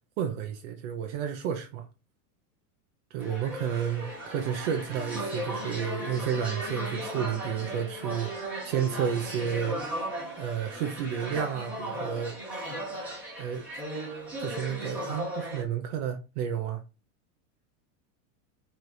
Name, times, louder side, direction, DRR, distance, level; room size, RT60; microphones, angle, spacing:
voice 1, 0.2-1.9 3.1-9.8 10.4-12.4 13.4-13.7 14.4-16.8, right 8 dB, 50° right, 0.7 m, -31 dB
sound 1, 3.2-15.6, right 1 dB, 5° right, 1.4 m, -37 dB
Wind instrument woodwind instrument, 4.4-11.2, equal, 35° right, 1.6 m, -45 dB
4.8 x 3.1 x 2.6 m
supercardioid pair, 160°, 46 cm